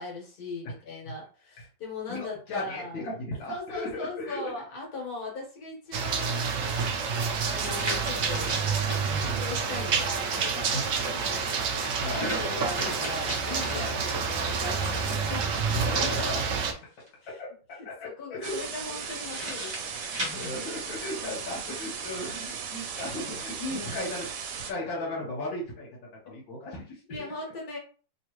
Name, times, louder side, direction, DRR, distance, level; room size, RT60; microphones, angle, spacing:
voice 1, 0.0-3.0 3.5-6.5 7.4-8.5 9.2-10.8 11.1-11.6 12.1-15.7 17.2-17.4 18.0-20.6 22.8-22.9 23.7-23.9 27.1-27.8, left 3 dB, 55° left, -2 dB, 1.9 m, -39 dB
voice 2, 2.1-4.5 9.1-9.5 10.7-10.8 12.0-12.3 13.7-14.0 15.7-16.5 17.3-17.5 17.9-18.6 20.3-24.3 24.7-25.9 26.2-27.0, left 1 dB, 75° left, -4 dB, 1.8 m, -36 dB
sound 1, 5.9-16.7, right 5 dB, 90° right, 0.7 m, -28 dB
sound 2, 7.1-9.1 10.5-14.4 15.8-17.1 18.9-21.3 22.1-23.1, equal, 15° right, 1.0 m, -39 dB
sound 3, 18.4-24.7, right 6 dB, 70° right, 1.2 m, -37 dB
3.3 x 3.1 x 3.0 m, 0.38 s
omnidirectional pair, 2.1 m